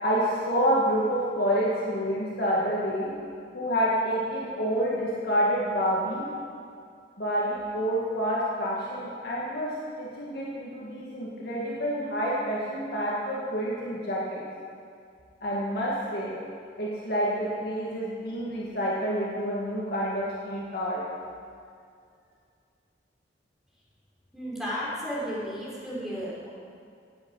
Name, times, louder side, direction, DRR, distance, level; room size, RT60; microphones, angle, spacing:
voice 1, 0.0-3.1 3.5-6.2 7.2-14.4 15.4-16.3 16.8-21.0, equal, 55° left, -6 dB, 2.0 m, -28 dB
voice 2, 24.3-26.5, equal, ahead, -8 dB, 3.9 m, -33 dB
17.5 x 8.1 x 5.6 m, 2.3 s
head